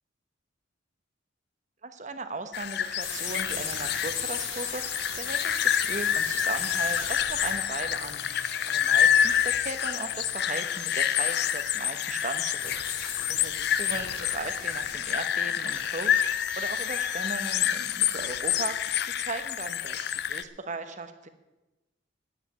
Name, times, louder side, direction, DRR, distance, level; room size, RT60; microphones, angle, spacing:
voice 1, 1.8-21.3, right 3 dB, 35° right, 9 dB, 1.1 m, -38 dB
sound 1, 2.5-20.4, left 9 dB, 55° left, 0.5 m, -28 dB
sound 2, 3.0-17.5, left 4 dB, 85° left, 4.4 m, -40 dB
10.0 x 9.2 x 9.2 m, 1.1 s
head